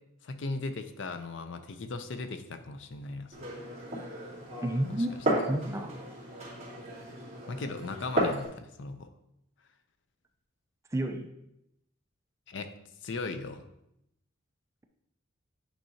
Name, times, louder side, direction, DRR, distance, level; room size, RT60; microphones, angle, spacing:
voice 1, 0.2-3.5 4.9-5.1 7.5-9.1 12.5-12.7 13.0-13.6, left 3 dB, 60° left, 9 dB, 0.5 m, -37 dB
Glass, 3.3-8.5, right 1 dB, 30° right, 2.4 m, -34 dB
voice 2, 4.6-5.2 5.5-6.0 10.9-11.3, right 1 dB, 15° right, 4 dB, 0.4 m, -30 dB
9.1 x 4.7 x 2.7 m, 0.81 s
head